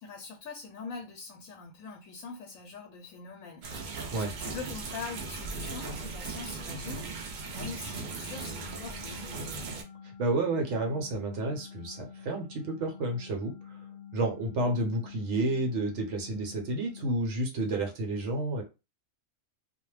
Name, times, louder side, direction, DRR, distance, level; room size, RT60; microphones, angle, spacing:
voice 1, 0.0-4.0 4.4-9.5, left 5 dB, 90° left, 1.0 m, -43 dB
sound 1, 3.6-9.8, right 4 dB, 85° right, 0.4 m, -38 dB
sound 2, 8.2-17.1, left 8 dB, 10° right, 0.5 m, -48 dB
voice 2, 10.0-13.8 14.1-18.6, right 2 dB, 65° right, 1.0 m, -30 dB
2.3 x 2.1 x 3.1 m
omnidirectional pair, 1.4 m